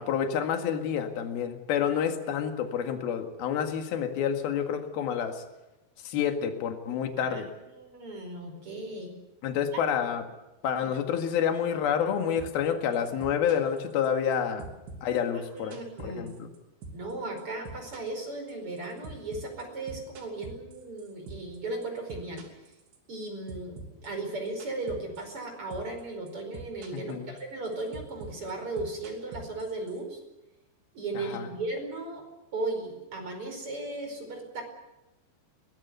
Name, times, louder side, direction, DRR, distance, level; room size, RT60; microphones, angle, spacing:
voice 1, 0.0-5.4 6.0-7.5 9.4-10.3 10.6-14.7 15.0-16.5 26.9-27.3 31.2-31.5, left 8 dB, 60° left, 5 dB, 3.5 m, -29 dB
voice 2, 7.7-9.2 9.7-9.8 10.9-11.0 15.5-16.4 16.9-22.4 23.1-30.2 30.9-32.3 32.5-34.6, right 2 dB, 30° right, 4 dB, 5.5 m, -36 dB
sound 1, 12.4-12.7 12.9-14.3 14.6-16.6 16.8-17.1 17.4-21.6 21.8-23.2 23.5-25.5 25.7-26.0 26.3-27.1 27.4-30.0, right 3 dB, 85° right, 5.5 m, -44 dB
23.0 x 20.0 x 8.2 m, 0.99 s
omnidirectional pair, 5.1 m